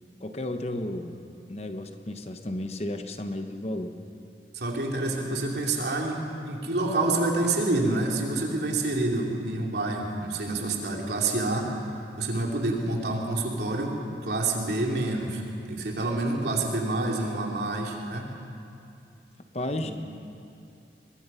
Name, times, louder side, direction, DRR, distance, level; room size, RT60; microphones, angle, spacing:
voice 1, 0.2-1.2 1.5-4.0 19.5-19.9, left 1 dB, 35° left, 6 dB, 1.1 m, -33 dB
voice 2, 4.5-15.4 15.7-18.3 19.8-19.9, right 2 dB, 70° right, -1 dB, 3.0 m, -28 dB
22.5 x 22.0 x 5.6 m, 2.6 s
head